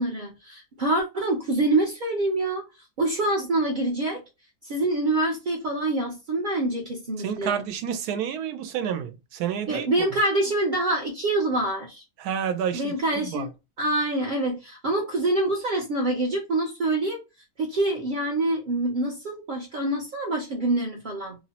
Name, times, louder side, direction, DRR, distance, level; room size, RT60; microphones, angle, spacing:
voice 1, 0.0-2.6 3.0-4.2 4.7-7.6 9.7-12.0 12.7-13.5 13.8-17.2 17.6-21.4, right 2 dB, 60° right, 0.5 m, -26 dB
voice 2, 7.2-10.1 12.2-13.5, right 8 dB, 90° right, 1.1 m, -30 dB
3.0 x 2.0 x 2.7 m
omnidirectional pair, 1.6 m